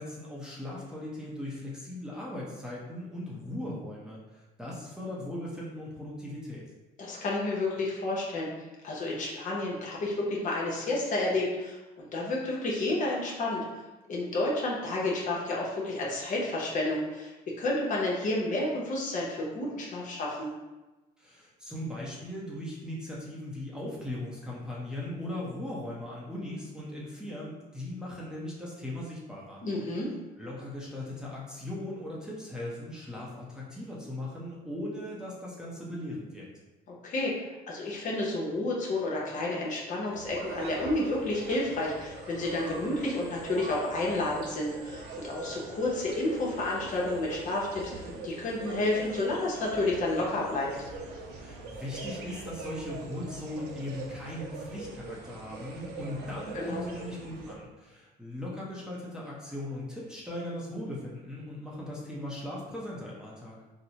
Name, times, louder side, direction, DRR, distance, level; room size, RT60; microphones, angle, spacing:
voice 1, 0.0-6.7 21.2-29.6 30.4-36.5 51.4-63.6, left 1 dB, 5° right, -6 dB, 0.7 m, -38 dB
voice 2, 7.0-8.5 8.8-13.6 14.1-20.5 29.6-30.1 36.9-37.3 37.7-50.7 56.5-56.9, left 2 dB, 50° left, -4 dB, 0.8 m, -30 dB
sound 1, 40.1-57.5, right 3 dB, 75° right, 0.6 m, -42 dB
4.0 x 2.1 x 2.8 m, 1.1 s
cardioid pair, 110°, 17 cm